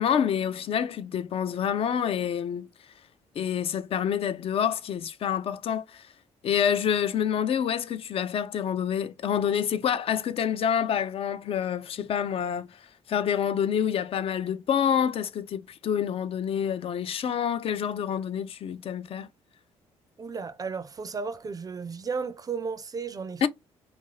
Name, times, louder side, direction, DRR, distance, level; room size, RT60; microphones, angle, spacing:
voice 1, 0.0-2.7 3.4-6.0 6.4-12.8 13.1-19.3 23.4-23.5, left 8 dB, 50° left, 0.4 m, -27 dB
voice 2, 20.2-23.5, right 5 dB, 30° right, 0.4 m, -34 dB
2.7 x 2.5 x 3.0 m
cardioid pair, 75°, 12 cm